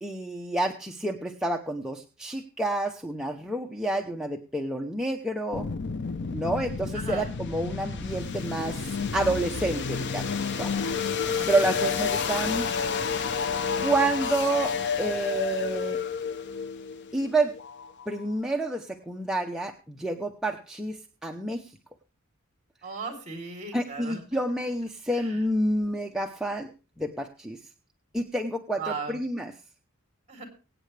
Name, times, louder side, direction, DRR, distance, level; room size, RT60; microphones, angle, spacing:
voice 1, 0.0-5.7 6.3-8.8 9.1-10.7 11.5-12.9 13.8-16.0 17.1-17.5 18.1-21.7 23.7-26.7 27.0-27.6 28.1-29.5, right 2 dB, 5° right, 1 dB, 0.8 m, -29 dB
sound 1, 5.5-18.3, left 5 dB, 55° left, 0.7 m, -30 dB
voice 2, 6.9-7.3 11.2-11.5 22.8-24.2 25.1-25.5 28.7-29.2 30.3-30.4, right 4 dB, 35° right, 3 dB, 3.6 m, -37 dB
23.5 x 9.0 x 3.4 m, 0.34 s
head